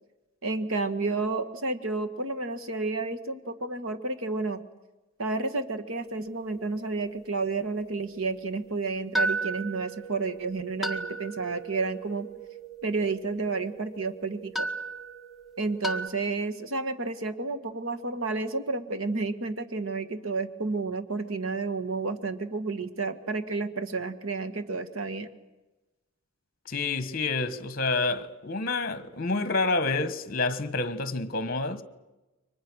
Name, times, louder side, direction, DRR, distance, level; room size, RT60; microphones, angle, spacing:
voice 1, 0.4-4.6 5.2-12.3 12.8-14.7 15.6-25.3, right 3 dB, 70° right, 1.7 m, -31 dB
sound 1, 6.0-7.6 8.0-8.1 9.1-16.1, right 2 dB, ahead, 1.5 m, -35 dB
voice 2, 26.7-31.8, left 3 dB, 45° left, 1.5 m, -28 dB
30.0 x 24.0 x 6.4 m
head